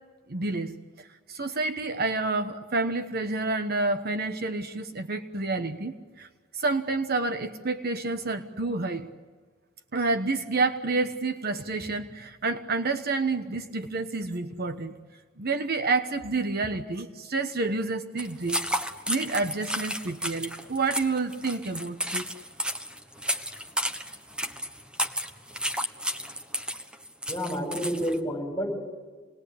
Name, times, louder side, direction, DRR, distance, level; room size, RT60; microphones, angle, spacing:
voice 1, 0.3-6.3 6.5-9.1 9.9-14.9 15.4-18.6 19.1-22.3, right 3 dB, 50° right, 7 dB, 1.2 m, -29 dB
sound 1, 18.2-28.2, equal, 5° right, 1.3 m, -32 dB
voice 2, 27.3-28.9, equal, 15° left, 1 dB, 6.3 m, -30 dB
27.5 x 20.5 x 8.5 m, 1.5 s
head